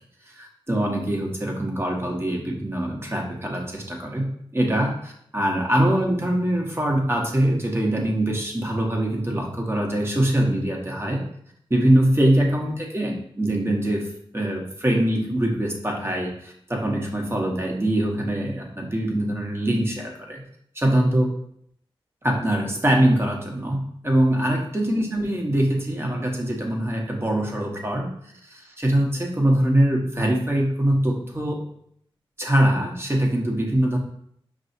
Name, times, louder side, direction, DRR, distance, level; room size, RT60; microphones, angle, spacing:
voice 1, 0.4-11.2 11.7-14.1 14.3-20.4 20.7-21.3 22.2-28.1 28.5-31.6 32.4-34.0, right 1 dB, 25° right, 0 dB, 1.1 m, -23 dB
5.5 x 2.7 x 2.7 m, 0.69 s
cardioid pair, 45°, 10 cm